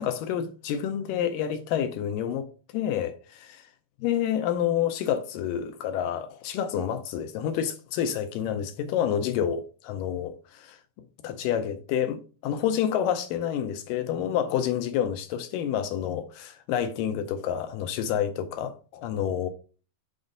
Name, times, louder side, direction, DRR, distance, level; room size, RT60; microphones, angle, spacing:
voice 1, 0.0-2.5 2.7-3.7 4.0-10.8 11.2-19.5, left 9 dB, 80° left, 2.0 m, -28 dB
6.0 x 3.9 x 5.1 m
omnidirectional pair, 4.3 m